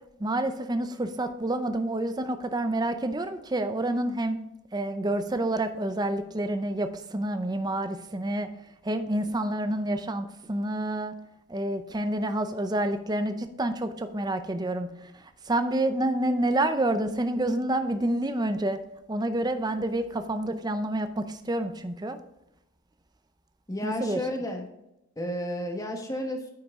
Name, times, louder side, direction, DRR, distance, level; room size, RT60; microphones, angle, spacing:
voice 1, 0.2-4.4 4.7-8.5 8.8-11.1 11.5-18.8 19.1-22.2 23.8-24.2, right 1 dB, 20° right, 9 dB, 0.5 m, -28 dB
voice 2, 23.7-24.7 25.2-26.5, left 1 dB, 15° left, 3 dB, 1.1 m, -32 dB
9.6 x 5.6 x 3.6 m, 0.89 s
head